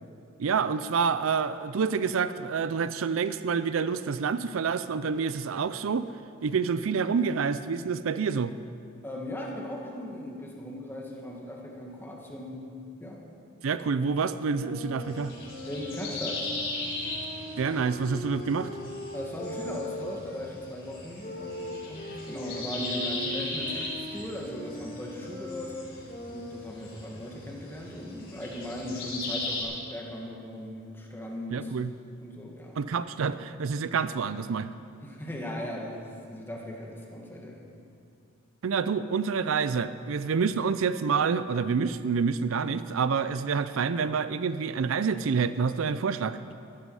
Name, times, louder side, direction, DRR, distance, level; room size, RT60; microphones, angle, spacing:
voice 1, 0.4-6.1 6.4-8.5 13.6-15.3 17.6-18.7 31.5-31.9 32.8-34.7 38.6-46.4, right 5 dB, 80° right, 13 dB, 0.5 m, -27 dB
voice 2, 9.0-12.6 13.0-13.2 15.6-16.5 19.1-25.8 26.3-31.7 32.2-32.8 35.0-37.6, left 1 dB, 10° left, -1 dB, 1.9 m, -38 dB
Wind instrument woodwind instrument, 14.5-20.4 21.2-27.0, left 1 dB, 45° left, 2.1 m, -41 dB
sound 1, 15.0-29.6, left 2 dB, 65° left, 4.4 m, -38 dB
14.5 x 13.5 x 4.8 m, 2.5 s
head